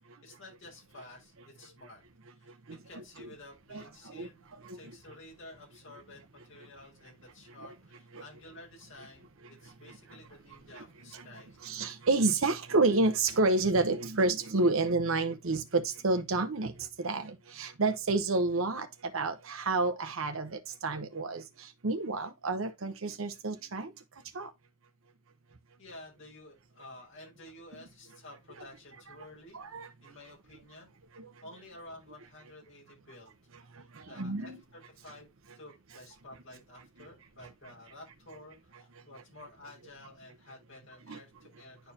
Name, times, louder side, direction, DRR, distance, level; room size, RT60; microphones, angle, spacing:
voice 1, 0.2-2.0 2.4-2.6 2.8-11.7 25.8-29.6 30.0-30.9 31.4-33.3 33.8-35.3 35.6-41.9, left 1 dB, 60° left, 5.3 m, -52 dB
voice 2, 3.7-4.8 8.1-8.2 10.7-10.8 11.1-11.3 11.6-16.7 17.0-21.4 21.8-23.9 24.3-24.5 29.5-29.9 31.2-31.3 34.0-34.6 41.1-41.2, right 3 dB, 65° right, 0.9 m, -29 dB
10.0 x 4.6 x 2.7 m
head